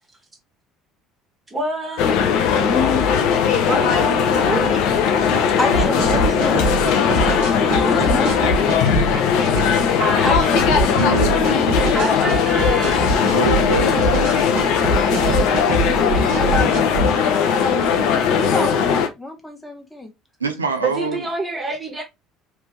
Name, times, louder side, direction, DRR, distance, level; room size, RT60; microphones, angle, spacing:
voice 1, 1.5-2.2 3.6-4.8 7.3-7.9 9.8-10.4 11.9-13.1 14.9-15.6 20.8-22.0, right 2 dB, 20° right, 1.5 m, -27 dB
sound 1, 2.0-19.1, left 7 dB, 60° left, 0.6 m, -18 dB
voice 2, 2.6-3.0 5.6-6.7 7.8-8.5 10.2-11.3 15.7-20.1, left 2 dB, 5° left, 1.2 m, -28 dB
sound 2, 5.7-17.1, right 3 dB, 60° right, 1.1 m, -24 dB
voice 3, 10.9-11.3 13.2-14.0 17.8-18.3 20.4-21.2, right 3 dB, 85° right, 0.5 m, -25 dB
3.4 x 2.9 x 3.2 m
figure-of-eight pair, 60°, 0 cm